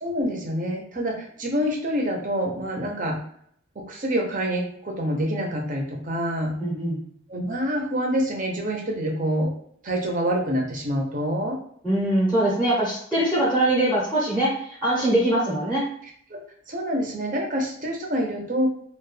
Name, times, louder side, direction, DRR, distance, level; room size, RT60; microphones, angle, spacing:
voice 1, 0.0-3.2 3.9-6.5 7.3-9.5 9.8-11.6 16.3-16.4 16.7-18.7, equal, 40° right, 0 dB, 0.6 m, -26 dB
voice 2, 6.6-7.0 11.8-15.9, right 1 dB, ahead, -7 dB, 0.7 m, -22 dB
2.2 x 2.2 x 3.2 m, 0.64 s
head